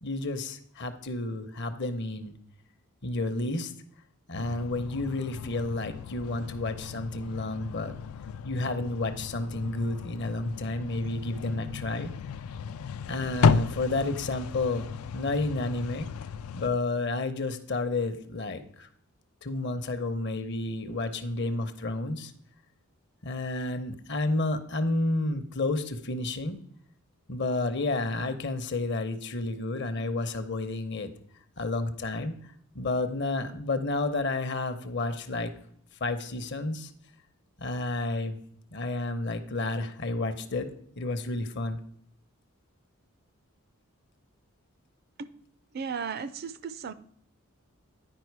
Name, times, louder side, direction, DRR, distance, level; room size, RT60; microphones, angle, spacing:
voice 1, 0.0-2.3 3.0-3.7 4.3-8.0 8.4-12.1 13.1-16.1 16.5-18.9 19.4-22.3 23.2-26.6 27.3-31.1 31.6-32.3 32.7-35.5 36.0-36.9 37.6-38.4 38.7-40.7 41.0-41.8, left 2 dB, 50° left, 0.8 m, -31 dB
sound 1, 4.3-16.7, left 5 dB, 85° left, 0.4 m, -33 dB
voice 2, 45.7-46.9, right 6 dB, 45° right, 0.4 m, -35 dB
10.0 x 5.0 x 4.6 m
head